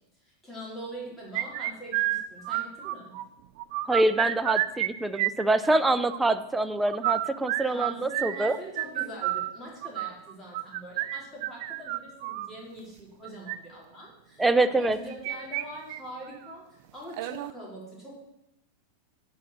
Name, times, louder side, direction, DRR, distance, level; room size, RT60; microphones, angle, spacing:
voice 1, 0.2-3.2 7.6-18.1, right 1 dB, 10° left, -5 dB, 3.7 m, -43 dB
sound 1, 1.3-3.2 3.6-4.9 5.1-6.2 6.9-12.5 13.2-13.6 14.8-15.6 15.9-16.0 16.4-16.5 17.1-17.5, right 16 dB, 55° right, 0.5 m, -30 dB
voice 2, 3.9-8.6 14.4-15.0, right 2 dB, 5° right, 10 dB, 0.5 m, -25 dB
9.4 x 5.2 x 7.9 m, 0.84 s
supercardioid pair, 150°, 0 cm